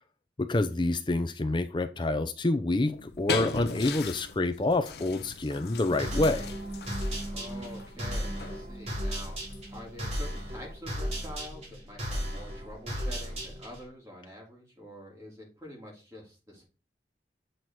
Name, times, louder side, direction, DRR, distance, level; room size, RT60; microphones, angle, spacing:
voice 1, 0.4-6.5, left 2 dB, 25° left, 0.5 m, -27 dB
sound 1, 2.8-10.9, left 4 dB, 60° left, 0.7 m, -39 dB
sound 2, 5.5-11.4 11.9-12.1 12.4-12.7, right 2 dB, 75° right, 4.5 m, -44 dB
sound 3, 6.0-13.9, equal, 35° right, 3.6 m, -35 dB
voice 2, 7.3-9.4 9.7-16.6, left 1 dB, 15° right, 2.7 m, -46 dB
7.8 x 4.2 x 4.6 m
head